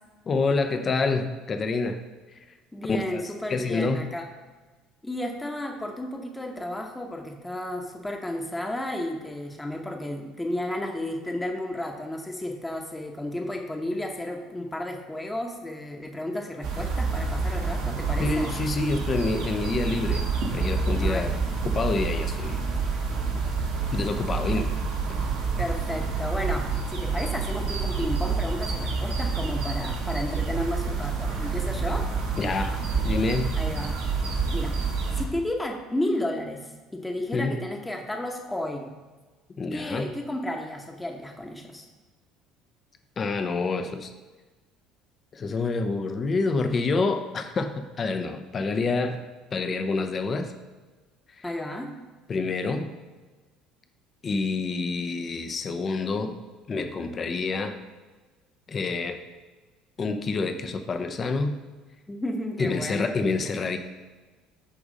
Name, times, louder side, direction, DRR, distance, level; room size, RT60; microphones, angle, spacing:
voice 1, 0.3-2.0 2.9-3.2 3.5-4.1 18.2-20.3 20.5-21.4 21.6-22.6 23.3-23.4 23.9-24.7 32.4-32.8 33.0-33.6 37.3-37.6 39.6-40.1 43.2-44.1 45.3-49.2 49.5-50.5 51.4-51.5 52.3-52.9 54.2-56.3 56.7-57.8 58.7-59.2 60.0-61.6 62.6-63.8, left 3 dB, 35° left, 7 dB, 0.7 m, -27 dB
voice 2, 2.7-4.3 5.0-18.5 21.0-21.3 24.5-24.7 25.6-32.1 33.5-34.0 34.5-34.7 35.1-38.9 39.7-41.9 51.4-52.0 62.1-63.1, left 1 dB, 10° left, 2 dB, 1.0 m, -32 dB
sound 1, 16.6-35.2, right 4 dB, 70° right, 1.4 m, -28 dB
9.9 x 3.6 x 5.2 m, 1.3 s
figure-of-eight pair, 60°, 0 cm